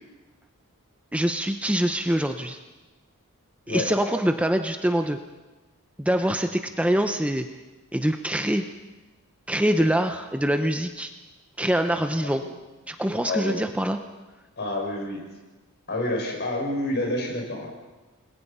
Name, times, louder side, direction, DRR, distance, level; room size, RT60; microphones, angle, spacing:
voice 1, 1.1-2.6 3.7-5.2 6.0-7.5 7.9-8.6 9.5-11.1 11.6-12.4 12.9-14.0, right 1 dB, 5° right, 6 dB, 0.8 m, -24 dB
voice 2, 14.6-15.2 15.9-17.7, left 1 dB, 50° left, 1 dB, 6.2 m, -28 dB
29.0 x 21.5 x 5.6 m, 1.2 s
head